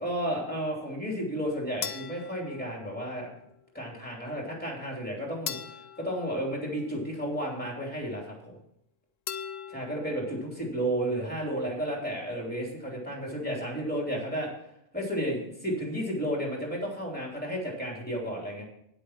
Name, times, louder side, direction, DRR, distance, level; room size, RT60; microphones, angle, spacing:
voice 1, 0.0-3.3 3.7-5.6 6.0-8.3 9.7-14.5 14.9-18.6, equal, 10° left, -1 dB, 3.1 m, -32 dB
sound 1, 1.8-3.3 5.5-7.3 9.3-10.4, left 8 dB, 65° left, 0.9 m, -40 dB
9.6 x 8.2 x 5.9 m, 0.77 s
omnidirectional pair, 1.2 m